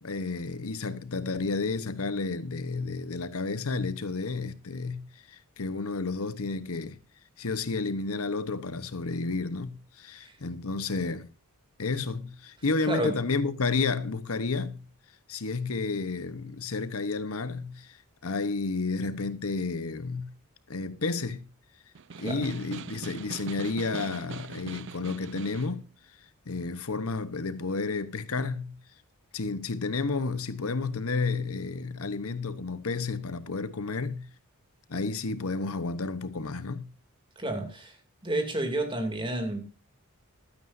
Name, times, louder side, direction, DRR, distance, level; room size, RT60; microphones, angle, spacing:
voice 1, 0.0-7.0 7.4-11.3 11.8-14.8 15.3-18.0 18.2-20.3 20.7-21.4 22.2-25.8 26.5-28.8 29.3-34.3 34.9-36.9, left 3 dB, 75° left, 1.0 m, -31 dB
voice 2, 12.8-13.2 22.2-22.5 37.4-38.0 38.2-39.6, right 1 dB, 20° right, 2.6 m, -30 dB
Snare drum, 21.9-25.8, right 5 dB, 55° right, 0.5 m, -41 dB
15.5 x 12.5 x 2.6 m
head